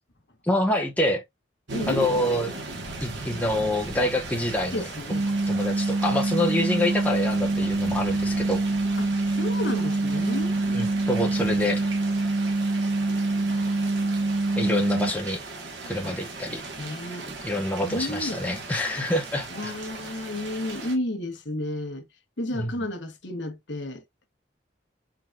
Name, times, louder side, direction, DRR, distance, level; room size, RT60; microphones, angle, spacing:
voice 1, 0.4-1.2 1.9-2.5 3.0-4.8 5.5-8.6 10.7-11.8 14.6-15.4 15.9-16.7 17.4-19.7 22.5-22.7, left 1 dB, 10° left, 0.8 m, -26 dB
voice 2, 1.7-2.1 4.7-5.3 9.0-10.5 15.9-16.1 16.8-17.3 17.8-18.4 19.5-22.1 22.4-24.0, left 1 dB, 65° left, 1.1 m, -32 dB
sound 1, 1.7-21.0, right 3 dB, 70° right, 1.5 m, -38 dB
sound 2, 5.1-15.1, right 2 dB, 40° right, 1.2 m, -25 dB
4.4 x 3.9 x 2.4 m
head